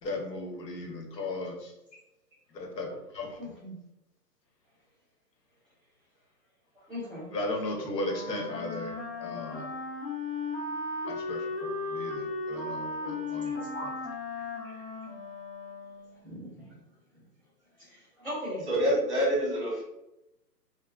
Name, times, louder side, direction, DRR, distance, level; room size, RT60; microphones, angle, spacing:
voice 1, 0.0-1.7 2.5-3.5 7.3-9.7 11.1-13.9, left 2 dB, 90° left, 1 dB, 1.0 m, -36 dB
voice 2, 3.4-3.8 6.7-7.3 13.7-13.8 16.2-16.8 17.1-17.2 17.8-18.6, left 1 dB, ahead, -23 dB, 1.3 m, -39 dB
Wind instrument woodwind instrument, 8.0-16.2, left 3 dB, 35° left, 0.8 m, -36 dB
voice 3, 18.7-19.8, equal, 45° right, -3 dB, 1.3 m, -26 dB
3.4 x 2.1 x 2.3 m, 0.90 s
hypercardioid pair, 180°, 48 cm